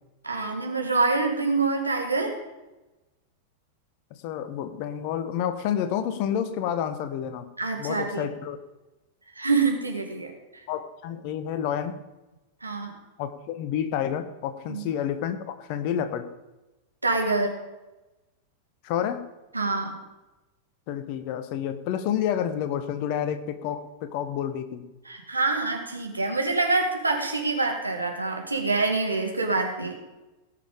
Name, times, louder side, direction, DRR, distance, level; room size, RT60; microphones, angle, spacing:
voice 1, 0.2-2.4 7.6-8.2 9.4-10.3 12.6-12.9 14.7-14.8 17.0-17.5 19.5-19.9 25.1-29.9, right 3 dB, 80° right, 3 dB, 2.0 m, -26 dB
voice 2, 4.2-7.5 7.8-8.6 10.7-12.0 13.2-16.3 18.8-19.2 20.9-24.9, left 9 dB, 45° left, 11 dB, 1.1 m, -29 dB
17.5 x 6.9 x 5.2 m, 1.0 s
figure-of-eight pair, 90°, 0 cm